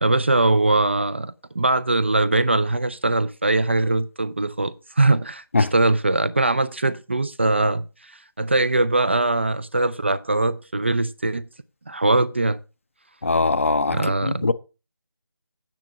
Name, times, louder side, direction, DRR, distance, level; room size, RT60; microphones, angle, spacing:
voice 1, 0.0-11.5 11.9-12.6 13.9-14.5, right 2 dB, 30° right, 0.4 m, -21 dB
voice 2, 13.2-14.5, left 3 dB, 35° left, 0.5 m, -21 dB
9.1 x 6.0 x 6.2 m
figure-of-eight pair, 165°, 12 cm